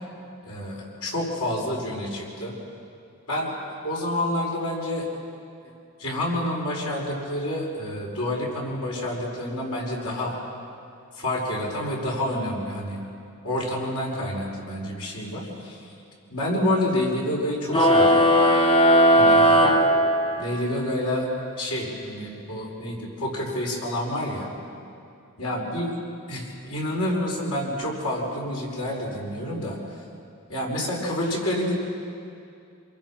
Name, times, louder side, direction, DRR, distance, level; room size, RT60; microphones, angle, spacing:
voice 1, 0.4-2.6 3.3-5.1 6.0-10.4 11.1-13.0 13.4-15.8 16.3-18.2 19.1-19.5 20.4-21.3 21.6-24.5 25.4-25.9 26.3-29.8 30.5-31.7, left 1 dB, 90° left, -3 dB, 5.9 m, -28 dB
sound 1, 17.7-20.7, equal, 25° left, 1.5 m, -17 dB
27.5 x 22.5 x 6.0 m, 2.5 s
head